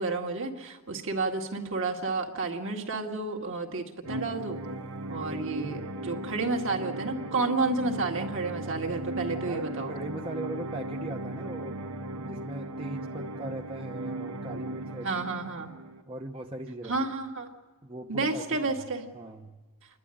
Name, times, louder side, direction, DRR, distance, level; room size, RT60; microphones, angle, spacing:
voice 1, 0.0-4.6 5.1-9.9 15.0-15.7 16.9-17.5 18.1-19.0, right 3 dB, 60° right, 2 dB, 2.1 m, -31 dB
sound 1, 4.0-16.0, right 1 dB, 85° right, 1.3 m, -37 dB
voice 2, 5.3-6.0 9.4-11.8 12.2-15.3 16.1-17.0 17.8-18.7 19.1-19.5, right 2 dB, 25° right, 1 dB, 0.9 m, -39 dB
28.5 x 11.5 x 9.9 m, 1.3 s
head